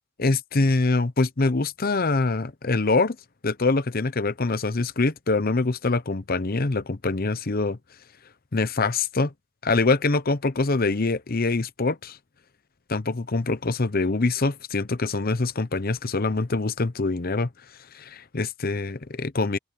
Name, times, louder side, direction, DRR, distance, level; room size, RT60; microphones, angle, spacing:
voice 1, 0.2-3.2 3.4-7.8 8.5-9.3 9.6-12.2 12.9-17.5 17.9-19.6, left 3 dB, 40° left, 0.8 m, -24 dB
open air
head